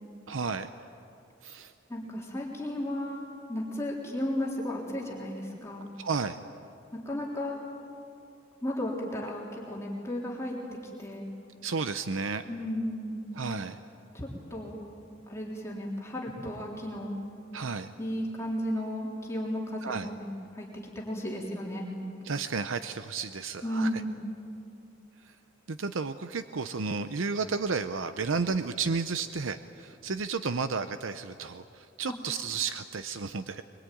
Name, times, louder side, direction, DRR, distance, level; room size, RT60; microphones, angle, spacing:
voice 1, 0.3-0.7 1.4-1.7 6.0-6.4 11.6-12.5 13.3-13.8 17.5-17.9 19.8-20.1 22.2-23.9 25.2-25.3 25.7-33.6, right 4 dB, 85° right, 10 dB, 0.7 m, -32 dB
voice 2, 1.9-5.9 6.9-7.6 8.6-10.6 11.0-11.3 12.5-13.2 14.1-14.9 15.3-17.2 18.0-20.7 21.0-22.0 23.6-24.2, left 1 dB, 15° left, -3 dB, 3.5 m, -34 dB
23.5 x 22.5 x 9.2 m, 2.6 s
head